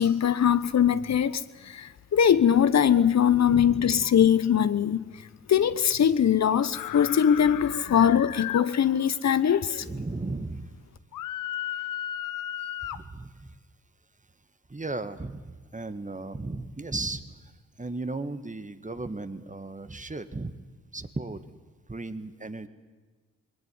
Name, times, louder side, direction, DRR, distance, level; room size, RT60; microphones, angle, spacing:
voice 1, 0.0-5.0 5.5-9.9, left 8 dB, 55° left, 0.9 m, -22 dB
voice 2, 3.5-4.1 9.8-10.7 12.6-13.6 14.7-17.5 17.8-20.5 20.9-21.4 21.9-22.7, right 2 dB, 25° right, 1.7 m, -36 dB
sound 1, 6.7-8.6 11.1-13.0, left 12 dB, 80° left, 0.8 m, -34 dB
20.0 x 17.5 x 9.7 m
supercardioid pair, 40°, 32 cm